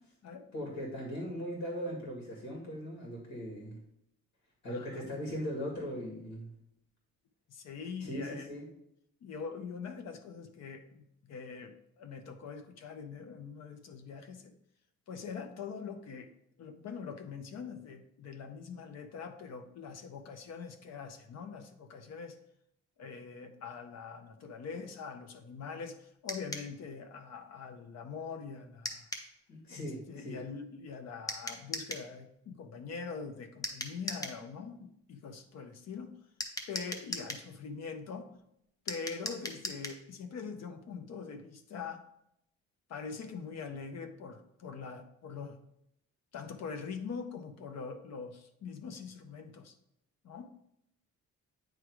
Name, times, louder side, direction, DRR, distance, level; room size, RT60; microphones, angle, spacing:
voice 1, 0.5-3.8 4.6-6.5 8.0-8.7 29.5-30.4, equal, 80° left, -2 dB, 2.3 m, -39 dB
voice 2, 4.7-5.1 7.5-8.6 9.2-14.5 15.1-16.3 16.6-22.4 23.0-29.1 29.7-36.1 36.7-38.3 38.8-42.0 42.9-45.6 46.3-49.7 50.2-50.5, left 5 dB, 60° left, 7 dB, 0.8 m, -43 dB
sound 1, 26.3-26.7 28.8-29.3 31.3-32.1 33.6-34.4 36.4-37.5 38.9-40.0, left 1 dB, 10° left, 0.6 m, -39 dB
9.0 x 3.3 x 4.7 m, 0.77 s
cardioid pair, 165°, 29 cm